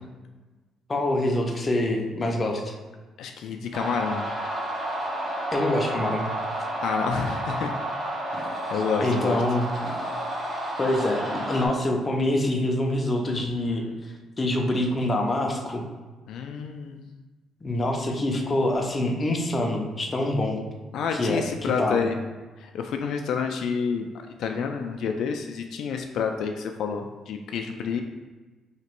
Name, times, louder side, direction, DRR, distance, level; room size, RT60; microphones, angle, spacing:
voice 1, 0.9-2.7 5.5-6.3 9.0-9.7 10.8-13.9 14.4-15.8 17.6-20.6 21.1-22.1, left 1 dB, 20° left, 1 dB, 0.5 m, -25 dB
voice 2, 3.2-4.2 6.8-7.7 8.3-9.4 16.3-17.0 20.9-22.2 22.6-24.1 24.4-28.0, left 6 dB, 70° left, 4 dB, 0.3 m, -29 dB
sound 1, 3.7-11.7, right 1 dB, 30° right, 1.1 m, -31 dB
3.0 x 2.8 x 4.4 m, 1.3 s
cardioid pair, 145°, 0 cm